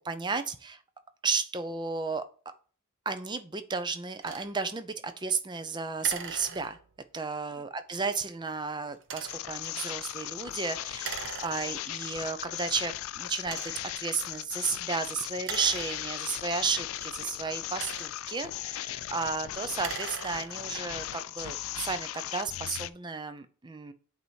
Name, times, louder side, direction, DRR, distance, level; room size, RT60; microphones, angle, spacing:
voice 1, 0.0-0.8 1.2-2.2 3.1-6.8 7.1-13.6 14.0-23.9, right 4 dB, 20° right, 9 dB, 0.5 m, -33 dB
sound 1, 4.2-4.5 6.0-7.0 9.0-9.6 11.0-12.0 12.7-12.8 13.4-14.0 15.4-16.5 17.5-18.4 19.7-20.7, right 7 dB, 60° right, 0.7 m, -41 dB
sound 2, 9.3-22.9, left 13 dB, 70° left, 0.3 m, -37 dB
8.2 x 2.7 x 4.6 m, 0.40 s
head